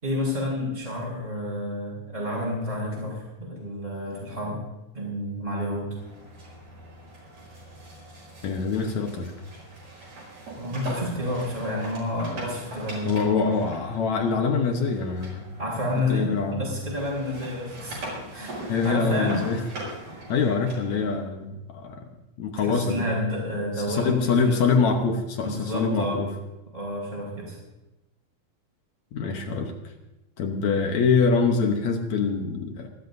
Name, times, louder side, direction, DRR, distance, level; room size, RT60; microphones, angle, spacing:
voice 1, 0.0-4.6 4.9-5.9 10.5-13.3 15.6-18.6 18.8-19.5 20.0-20.2 22.6-24.6 25.4-26.2 26.7-27.6, left 1 dB, 15° right, -9 dB, 4.8 m, -30 dB
sound 1, 6.0-16.5 16.8-21.2, right 1 dB, 45° right, 7.9 m, -41 dB
voice 2, 8.4-9.3 13.0-15.5 16.1-16.6 18.7-19.6 20.3-22.0 22.4-23.0 23.9-26.3 29.1-29.7 30.4-32.9, left 5 dB, 70° left, 4 dB, 1.8 m, -24 dB
28.5 x 12.5 x 2.7 m, 0.98 s
omnidirectional pair, 4.6 m